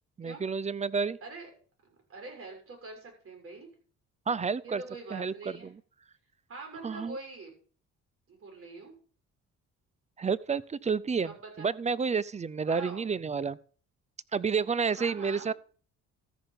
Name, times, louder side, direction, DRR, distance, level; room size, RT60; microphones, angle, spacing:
voice 1, 0.2-1.2 4.3-4.8 5.1-5.3 5.6-5.7 6.8-7.2 10.2-11.3 11.6-13.6 14.3-15.5, right 5 dB, 25° right, 0.5 m, -30 dB
voice 2, 2.1-3.7 4.6-5.7 6.5-7.5 8.3-8.9 11.2-11.7 12.7-13.0 14.9-15.5, right 3 dB, 45° right, 6.7 m, -44 dB
13.5 x 5.6 x 6.9 m
cardioid pair, 90°, 30 cm